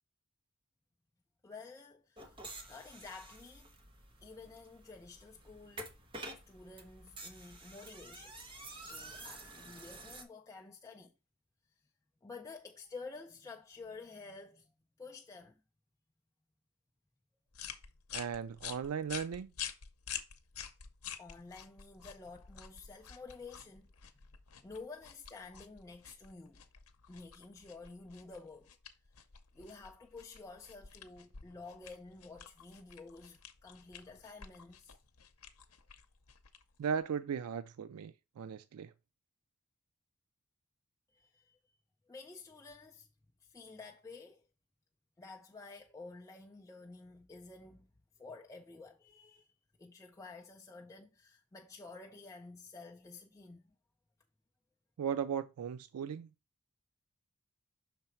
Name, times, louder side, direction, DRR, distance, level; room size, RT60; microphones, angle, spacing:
voice 1, 1.4-2.4 2.7-3.7 4.2-5.9 6.5-8.4 8.9-11.1 12.2-14.7 15.0-15.6 21.2-23.9 24.6-26.6 27.1-28.7 29.5-35.0 41.1-41.8 42.1-43.1 43.4-44.4 45.2-47.9 48.2-49.5 49.8-53.6, left 3 dB, 15° left, 0.4 m, -51 dB
sound 1, 2.2-10.2, right 2 dB, 25° right, 1.0 m, -50 dB
sound 2, 17.5-37.1, left 9 dB, 70° left, 0.7 m, -49 dB
voice 2, 18.1-19.5 36.8-38.9 55.0-56.3, right 7 dB, 80° right, 0.4 m, -37 dB
5.8 x 3.9 x 4.3 m
head